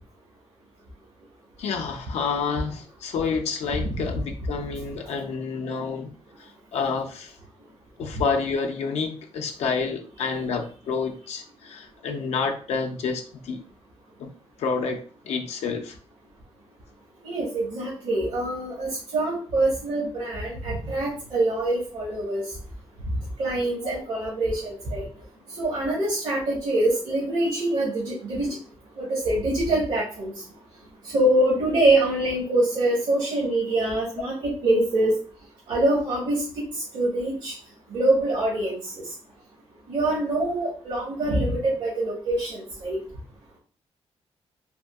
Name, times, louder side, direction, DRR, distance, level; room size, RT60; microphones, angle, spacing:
voice 1, 1.6-6.1 6.4-7.3 8.0-13.6 14.2-14.3 14.6-16.0 23.8-24.1, left 5 dB, 85° left, 4 dB, 0.4 m, -29 dB
voice 2, 17.2-22.4 23.4-25.0 25.6-28.6 29.0-30.3 31.0-35.2 35.7-36.4 36.9-37.5 37.9-38.8 39.9-43.0, right 1 dB, 75° right, -5 dB, 1.2 m, -24 dB
3.5 x 2.6 x 2.3 m, 0.41 s
cardioid pair, 95°, 11 cm